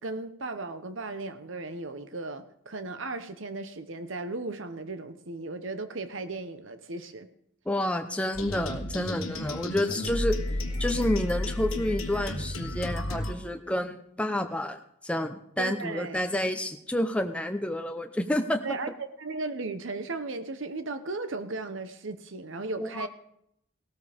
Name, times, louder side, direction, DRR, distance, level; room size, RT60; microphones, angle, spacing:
voice 1, 0.0-7.3 15.6-16.2 18.6-18.9 19.2-23.1, right 3 dB, 65° right, 10 dB, 1.0 m, -36 dB
voice 2, 7.7-10.4 10.8-18.6 22.8-23.1, left 1 dB, 5° left, 6 dB, 0.8 m, -29 dB
sound 1, 8.3-13.3, left 1 dB, 75° left, 1.5 m, -32 dB
17.5 x 13.5 x 3.5 m, 0.74 s
head